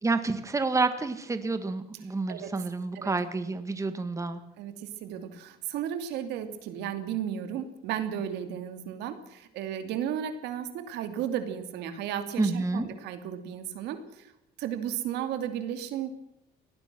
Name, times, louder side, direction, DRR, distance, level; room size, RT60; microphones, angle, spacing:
voice 1, 0.0-4.4 12.4-12.9, right 3 dB, 20° right, 10 dB, 1.8 m, -29 dB
voice 2, 4.6-14.3 14.6-16.1, right 9 dB, 85° right, 8 dB, 2.6 m, -34 dB
23.5 x 19.0 x 6.2 m, 0.81 s
cardioid pair, 110°, 17 cm